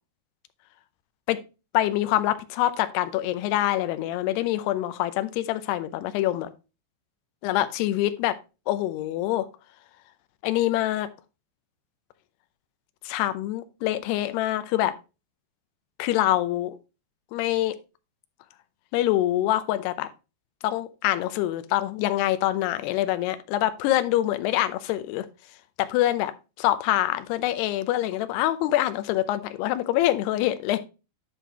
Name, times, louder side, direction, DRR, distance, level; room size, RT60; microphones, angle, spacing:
voice 1, 1.7-6.5 7.4-8.4 8.7-9.5 10.4-11.1 13.0-14.9 16.0-16.7 17.3-17.8 18.9-20.1 20.6-25.3 25.8-26.3 26.6-30.8, left 14 dB, 80° left, 2.5 m, -25 dB
11.0 x 5.9 x 3.0 m
omnidirectional pair, 5.4 m